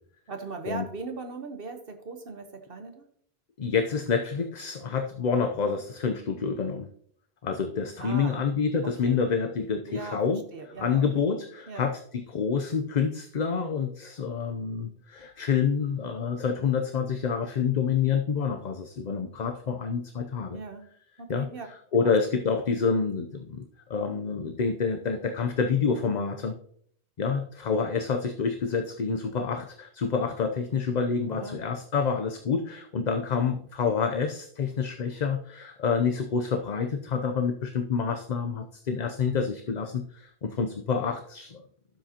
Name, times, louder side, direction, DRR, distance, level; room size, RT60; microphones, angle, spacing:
voice 1, 0.3-3.0 8.0-8.4 9.0-9.2 9.9-10.2 10.5-11.1 11.7-11.9 20.5-20.9 21.2-21.7 31.3-31.6, right 3 dB, 65° right, 6 dB, 1.2 m, -38 dB
voice 2, 3.6-6.9 7.4-20.6 21.3-26.5 27.2-41.6, left 5 dB, 50° left, 5 dB, 0.7 m, -28 dB
12.0 x 7.5 x 2.8 m, 0.63 s
omnidirectional pair, 1.0 m